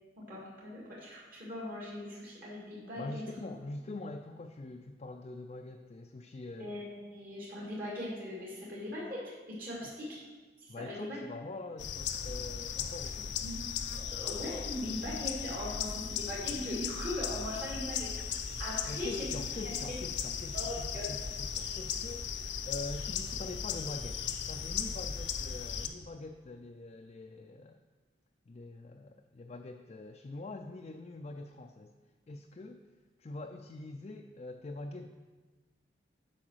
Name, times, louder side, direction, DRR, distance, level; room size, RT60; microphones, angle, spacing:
voice 1, 0.2-3.5 6.6-10.2 10.6-11.2 13.4-13.6 13.9-19.3 19.6-20.0 20.5-21.1, left 1 dB, 55° right, -6 dB, 2.2 m, -40 dB
voice 2, 3.0-6.7 9.8-9.9 10.7-13.3 18.9-27.8 28.5-31.9 32.3-32.8 33.2-35.1, left 2 dB, 35° left, 4 dB, 0.4 m, -44 dB
sound 1, 11.8-25.9, left 7 dB, 85° left, 0.6 m, -37 dB
Engine, 17.2-25.9, right 1 dB, 80° right, 0.8 m, -50 dB
8.6 x 4.9 x 6.3 m, 1.3 s
head